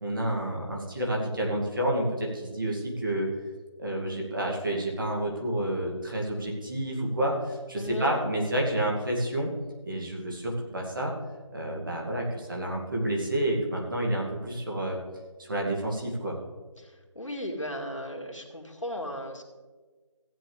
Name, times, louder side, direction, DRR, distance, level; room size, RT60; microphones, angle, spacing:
voice 1, 0.0-3.3 3.8-9.5 9.8-11.1 11.5-15.0 15.4-16.4, right 1 dB, 40° right, -1 dB, 2.3 m, -29 dB
voice 2, 7.8-8.2 16.8-19.5, equal, 75° left, 1 dB, 2.1 m, -36 dB
15.0 x 8.9 x 3.4 m, 1.4 s
figure-of-eight pair, 170°, 16 cm